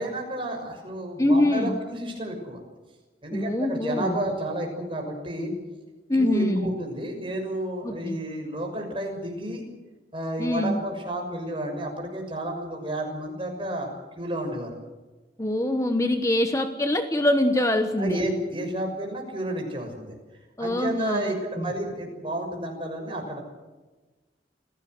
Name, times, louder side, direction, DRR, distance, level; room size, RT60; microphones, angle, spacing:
voice 1, 0.0-2.6 3.2-5.5 6.1-9.6 10.1-13.9 14.2-14.7 18.0-20.2 20.6-23.4, right 1 dB, 30° right, 2 dB, 6.3 m, -31 dB
voice 2, 1.2-1.8 3.3-4.2 6.1-6.7 7.8-8.2 10.4-10.8 15.4-18.2 20.6-21.7, left 1 dB, 20° left, 7 dB, 1.2 m, -24 dB
28.0 x 16.5 x 8.0 m, 1.2 s
head